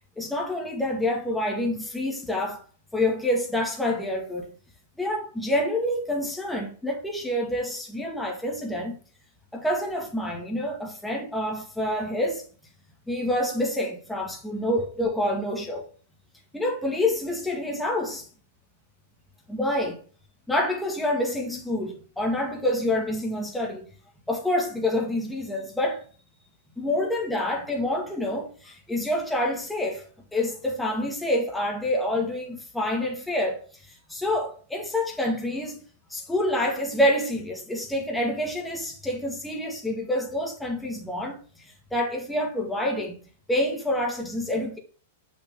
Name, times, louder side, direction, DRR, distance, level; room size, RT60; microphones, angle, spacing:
voice 1, 0.2-2.6 2.9-4.5 5.0-9.0 9.5-12.5 13.1-15.9 16.5-18.3 19.5-20.0 20.5-23.9 24.3-26.1 26.8-30.0 30.3-35.8 36.1-43.2 43.5-44.8, left 1 dB, 5° left, 1.7 m, -27 dB
6.5 x 6.0 x 3.5 m
hypercardioid pair, 135°, 0 cm